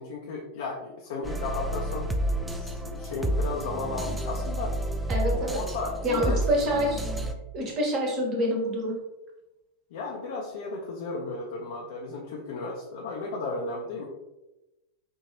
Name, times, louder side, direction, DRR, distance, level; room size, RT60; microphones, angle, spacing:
voice 1, 0.0-2.1 2.4-4.7 5.5-6.4 9.9-14.1, left 3 dB, 55° left, -1 dB, 0.6 m, -34 dB
sound 1, 1.2-7.3, right 1 dB, 5° right, 0.4 m, -30 dB
voice 2, 5.1-5.6 6.0-7.0 7.5-8.9, equal, 35° right, 0 dB, 1.2 m, -26 dB
5.3 x 2.8 x 2.9 m, 0.99 s
figure-of-eight pair, 90°, 0 cm